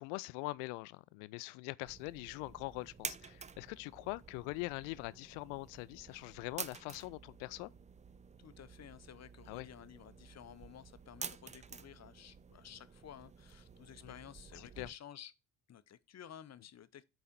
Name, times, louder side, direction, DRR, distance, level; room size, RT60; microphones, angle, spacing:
voice 1, 0.0-7.7 9.5-9.7 14.0-14.1 14.5-14.9, left 23 dB, 70° left, 0.5 m, -43 dB
sound 1, 1.9-14.9, right 5 dB, 15° right, 0.4 m, -50 dB
voice 2, 8.4-15.3 15.7-17.0, left 10 dB, 35° left, 0.7 m, -54 dB
8.4 x 4.1 x 4.3 m
figure-of-eight pair, 40°, 44 cm